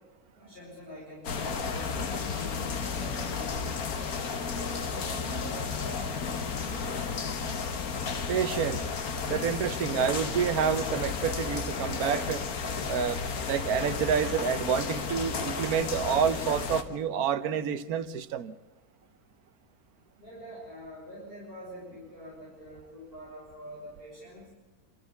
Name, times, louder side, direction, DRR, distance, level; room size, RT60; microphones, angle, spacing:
voice 1, 0.4-4.1 4.7-6.2 6.6-7.0 20.2-24.4, equal, 40° left, 6.4 m, -45 dB
sound 1, 1.2-16.8, left 5 dB, 75° left, 1.8 m, -33 dB
voice 2, 8.3-9.0 9.3-12.4 12.9-13.2 13.4-18.5, right 7 dB, 80° right, 1.3 m, -28 dB
27.0 x 13.5 x 8.1 m
omnidirectional pair, 1.5 m